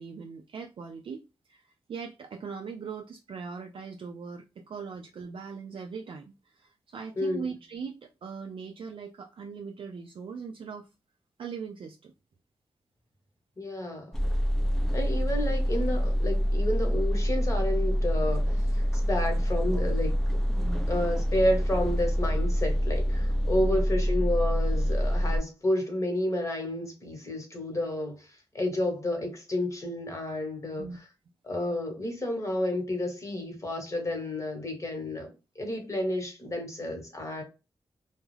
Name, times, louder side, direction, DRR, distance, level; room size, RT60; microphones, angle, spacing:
voice 1, 0.0-10.9 11.4-12.1 20.6-21.1 23.6-23.8 30.8-31.0, right 5 dB, 60° right, 0.4 m, -40 dB
voice 2, 7.2-7.5 13.6-14.1 14.9-20.2 20.9-30.9 31.4-35.3 35.5-37.4, left 1 dB, 30° left, 1.1 m, -30 dB
sound 1, 14.1-25.4, equal, 5° left, 0.5 m, -26 dB
2.3 x 2.0 x 3.1 m
cardioid pair, 65°, 10 cm